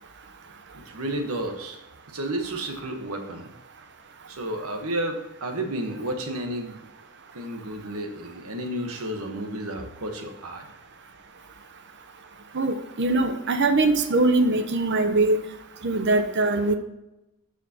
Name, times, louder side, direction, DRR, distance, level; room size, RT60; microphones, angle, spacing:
voice 1, 0.7-1.8 2.1-3.5 4.3-6.8 7.3-10.6, right 1 dB, 75° right, 5 dB, 1.2 m, -32 dB
voice 2, 12.5-15.4 15.8-16.8, right 2 dB, 55° right, 8 dB, 0.8 m, -22 dB
12.5 x 5.0 x 2.9 m, 0.95 s
head